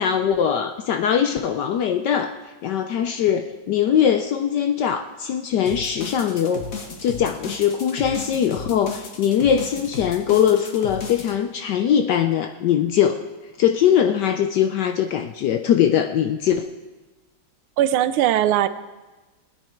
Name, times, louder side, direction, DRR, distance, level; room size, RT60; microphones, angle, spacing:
voice 1, 0.0-2.4 2.6-13.2 13.6-16.7, left 9 dB, 70° left, 7 dB, 1.0 m, -21 dB
sound 1, 5.7-11.3, left 4 dB, 45° left, 1.6 m, -35 dB
voice 2, 17.8-18.7, right 12 dB, 90° right, 13 dB, 1.5 m, -19 dB
20.0 x 9.6 x 4.5 m, 1.2 s
omnidirectional pair, 2.2 m